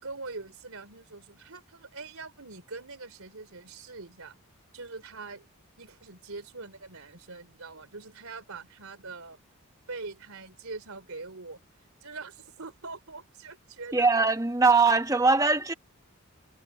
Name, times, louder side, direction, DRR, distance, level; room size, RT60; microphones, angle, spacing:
voice 1, 0.0-4.4 4.7-5.5 5.8-9.4 9.9-11.6 12.0-14.1, right 3 dB, 75° right, 3.2 m, -43 dB
voice 2, 13.9-15.7, right 4 dB, 15° right, 1.1 m, -21 dB
head